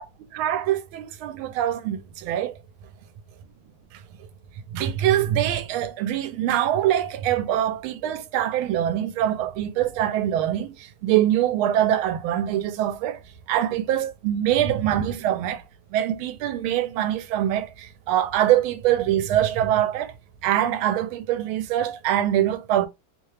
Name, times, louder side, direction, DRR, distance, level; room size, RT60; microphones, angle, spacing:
voice 1, 0.3-2.5 4.7-10.7 11.0-13.2 13.5-15.6 15.9-20.1 20.4-22.9, right 11 dB, 85° right, 1.4 m, -23 dB
3.4 x 2.8 x 3.1 m
omnidirectional pair, 2.2 m